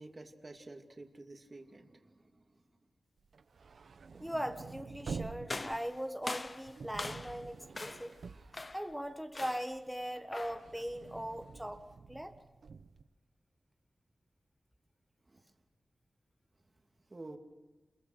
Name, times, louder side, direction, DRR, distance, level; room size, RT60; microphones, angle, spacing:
voice 1, 0.0-2.6 15.3-15.4 17.1-17.4, right 2 dB, 40° right, 4 dB, 2.7 m, -50 dB
sound 1, 3.3-9.4 9.7-13.0, right 5 dB, 80° right, 1.0 m, -48 dB
voice 2, 4.2-8.1 8.7-11.8 12.1-12.3, equal, ahead, 6 dB, 1.5 m, -40 dB
sound 2, 5.5-7.5 7.8-8.2 8.5-8.9 9.4-9.8 10.3-10.7, left 2 dB, 40° left, 0.7 m, -42 dB
27.5 x 22.0 x 6.3 m, 1.2 s
cardioid pair, 65°, 0 cm